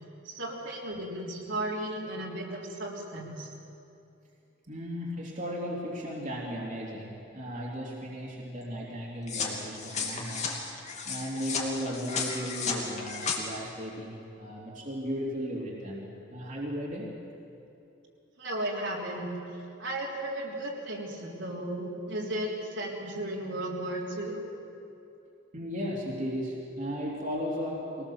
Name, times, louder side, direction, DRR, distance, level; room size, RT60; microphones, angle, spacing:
voice 1, 0.3-3.5 18.4-19.3 19.8-24.4, right 1 dB, 65° right, -3 dB, 3.6 m, -35 dB
voice 2, 4.7-10.5 11.0-17.1 25.5-28.0, equal, 40° right, -4 dB, 3.0 m, -35 dB
sound 1, 9.3-13.4, left 5 dB, 35° left, 2.5 m, -34 dB
23.0 x 19.0 x 7.2 m, 2.7 s
head